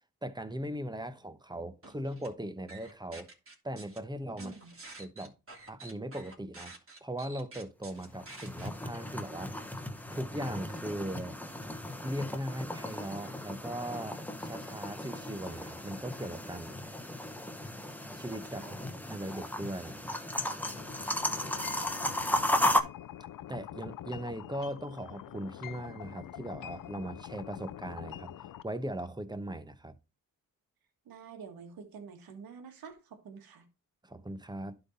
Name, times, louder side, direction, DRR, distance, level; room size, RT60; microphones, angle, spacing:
voice 1, 0.2-3.3 3.6-4.6 5.0-5.3 5.7-6.7 7.0-9.5 10.1-11.4 12.0-16.8 18.2-18.7 19.1-20.1 23.5-28.3 28.6-29.9 34.0-34.8, right 1 dB, 10° right, 1.0 m, -39 dB
sound 1, 1.8-2.3 2.7-4.0 4.4-8.7, right 2 dB, 40° right, 3.0 m, -49 dB
voice 2, 4.4-4.7 18.5-19.0 21.2-21.9 31.1-33.6, right 6 dB, 85° right, 1.7 m, -49 dB
sound 2, 8.0-22.8, left 1 dB, 5° left, 1.2 m, -35 dB
sound 3, 20.6-28.6, left 11 dB, 70° left, 0.6 m, -45 dB
11.5 x 4.0 x 4.2 m
cardioid pair, 60°, 35 cm